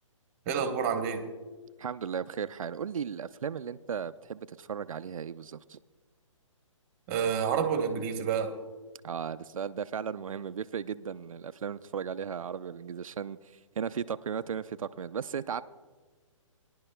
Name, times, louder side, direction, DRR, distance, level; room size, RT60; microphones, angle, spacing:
voice 1, 0.5-1.3 7.1-8.6, right 7 dB, 25° right, 7 dB, 1.0 m, -29 dB
voice 2, 1.8-5.8 9.0-15.6, right 7 dB, 85° right, 12 dB, 0.4 m, -36 dB
20.5 x 11.0 x 2.2 m, 1.4 s
hypercardioid pair, 145°, 17 cm